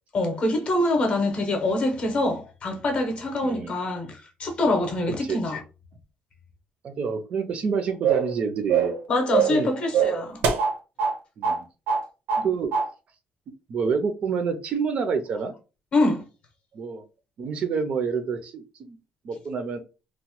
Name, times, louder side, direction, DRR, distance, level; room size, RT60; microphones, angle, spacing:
voice 1, 0.1-5.6 9.1-10.5 12.4-12.5 15.9-16.2, left 2 dB, 35° left, 0.7 m, -25 dB
voice 2, 3.4-3.8 5.2-5.5 6.8-8.9 9.5-9.7 11.4-11.6 12.4-12.7 13.7-15.5 16.7-17.0 17.4-19.0 19.2-19.8, right 5 dB, 40° right, 0.4 m, -28 dB
sound 1, 8.0-8.3 8.7-9.0 9.3-9.6 9.9-11.2 11.4-11.6 11.9-12.5 12.7-12.9, right 7 dB, 90° right, 0.6 m, -23 dB
2.9 x 2.0 x 2.9 m
cardioid pair, 175°, 3 cm